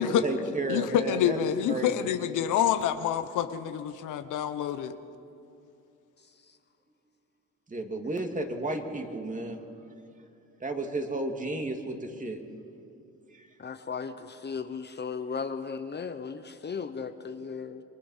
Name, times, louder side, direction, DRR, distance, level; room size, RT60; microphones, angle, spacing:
voice 1, 0.0-1.4 1.7-2.1 7.7-9.6 10.6-12.4 13.4-13.5, right 2 dB, 25° right, 4 dB, 2.6 m, -32 dB
voice 2, 0.7-4.9, left 9 dB, 85° left, 10 dB, 1.1 m, -27 dB
voice 3, 13.6-17.8, left 5 dB, 35° left, 9 dB, 1.1 m, -36 dB
27.5 x 23.0 x 5.7 m, 2.6 s
cardioid pair, 90°, 30 cm